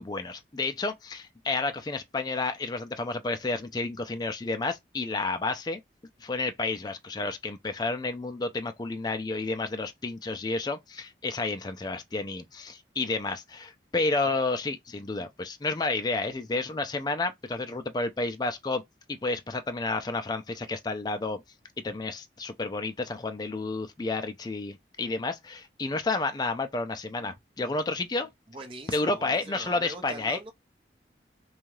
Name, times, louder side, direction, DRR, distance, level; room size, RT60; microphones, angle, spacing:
voice 1, 0.0-5.8 6.2-18.8 19.1-21.4 21.8-28.3 28.9-30.4, left 3 dB, 25° left, 0.4 m, -31 dB
voice 2, 28.5-30.5, right 2 dB, 30° right, 0.8 m, -42 dB
2.7 x 2.3 x 3.0 m
head